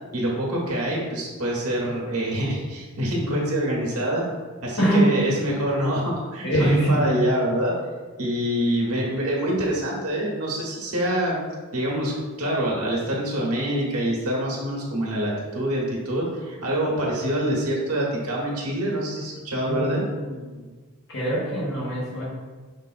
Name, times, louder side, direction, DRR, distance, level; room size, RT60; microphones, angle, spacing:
voice 1, 0.1-4.2 4.6-7.7 8.2-11.4 11.7-12.1 12.4-20.0, right 1 dB, 70° right, -3 dB, 1.2 m, -25 dB
voice 2, 4.8-5.2 6.4-7.2 19.7-20.6 21.1-22.2, right 1 dB, 55° left, -7 dB, 1.0 m, -23 dB
5.4 x 3.4 x 2.4 m, 1.4 s
head